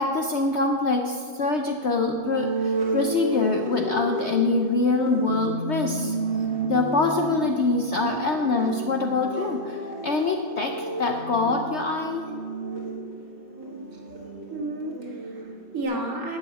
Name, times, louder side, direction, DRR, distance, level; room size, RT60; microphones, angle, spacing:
voice 1, 0.0-6.2 6.7-12.3, left 3 dB, 60° left, 3 dB, 0.7 m, -25 dB
sound 1, 2.1-15.8, right 2 dB, 80° right, 2.4 m, -32 dB
voice 2, 14.5-16.4, right 1 dB, 50° right, 0 dB, 2.1 m, -32 dB
11.0 x 5.7 x 8.3 m, 2.1 s
omnidirectional pair, 2.0 m